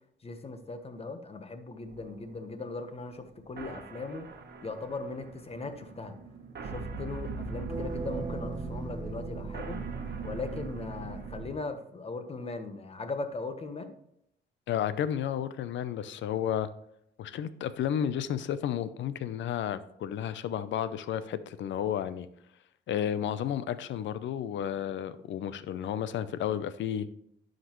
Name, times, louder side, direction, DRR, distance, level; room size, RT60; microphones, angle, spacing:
voice 1, 0.2-4.3 4.6-6.2 6.6-9.9 10.2-13.9, left 3 dB, 30° left, 8 dB, 1.1 m, -39 dB
sound 1, 1.9-11.5, right 4 dB, 55° right, 1.2 m, -40 dB
sound 2, 7.7-10.7, right 3 dB, 20° right, 0.8 m, -40 dB
voice 2, 14.7-16.7 17.2-22.3 22.9-27.1, left 9 dB, 70° left, 14 dB, 0.6 m, -32 dB
11.0 x 5.2 x 3.1 m, 0.75 s
cardioid pair, 90°, 20 cm